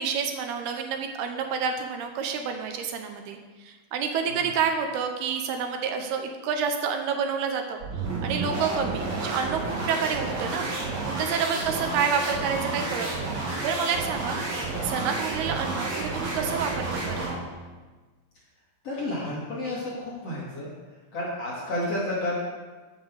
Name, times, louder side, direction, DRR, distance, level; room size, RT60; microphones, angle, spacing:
voice 1, 0.0-7.8 8.2-10.7 11.1-14.4 14.8-17.3, right 6 dB, 70° right, 5 dB, 2.7 m, -29 dB
sound 1, 7.8-17.5, right 3 dB, 40° right, 3.5 m, -30 dB
voice 2, 18.8-20.7 21.1-22.4, left 1 dB, 40° left, -7 dB, 3.5 m, -31 dB
12.5 x 8.4 x 6.5 m, 1.3 s
omnidirectional pair, 5.2 m